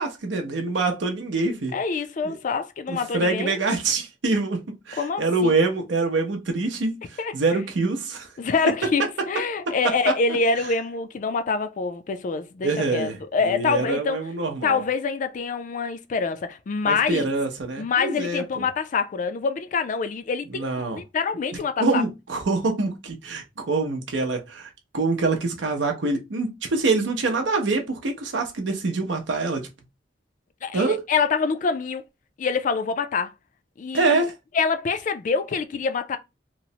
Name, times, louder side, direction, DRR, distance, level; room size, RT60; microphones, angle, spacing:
voice 1, 0.0-1.7 2.2-2.4 2.9-8.3 10.0-10.1 12.6-13.2 13.4-14.8 16.8-18.6 20.5-21.0 21.8-29.7 30.7-31.0 33.9-34.3, right 3 dB, 85° right, 0.6 m, -25 dB
voice 2, 1.7-3.6 5.0-5.6 7.2-7.3 8.4-14.2 14.6-17.2 17.8-20.7 20.9-22.0 30.6-32.0 32.4-33.3 33.8-34.3 34.5-36.2, left 5 dB, 45° left, 0.3 m, -25 dB
2.9 x 2.0 x 2.7 m
head